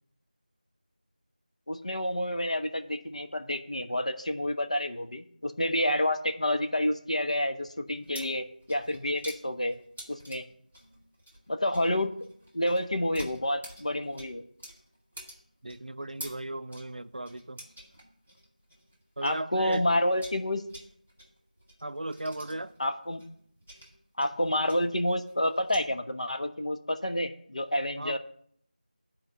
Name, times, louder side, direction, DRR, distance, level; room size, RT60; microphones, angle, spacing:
voice 1, 1.7-9.8 10.1-10.4 11.5-12.3 12.5-14.4 19.2-20.6 22.8-23.2 24.2-28.2, left 1 dB, 50° left, 0.9 m, -29 dB
sound 1, 7.9-19.4 19.7-25.8, equal, 10° left, 0.4 m, -49 dB
voice 2, 15.6-17.6 19.2-19.8 21.8-22.7 28.0-28.2, right 1 dB, 60° right, 0.5 m, -36 dB
9.7 x 4.4 x 6.5 m
figure-of-eight pair, 180°, 5 cm